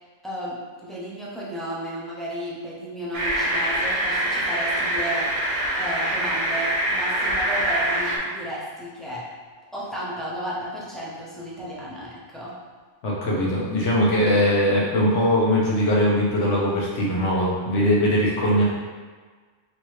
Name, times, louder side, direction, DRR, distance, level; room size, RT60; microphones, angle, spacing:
voice 1, 0.2-9.2 9.7-12.5, equal, ahead, -8 dB, 0.4 m, -33 dB
sound 1, 3.1-8.2, right 1 dB, 50° right, 0.9 m, -24 dB
voice 2, 13.0-18.6, equal, 75° left, -5 dB, 1.2 m, -21 dB
3.3 x 2.8 x 3.1 m, 1.5 s
omnidirectional pair, 1.2 m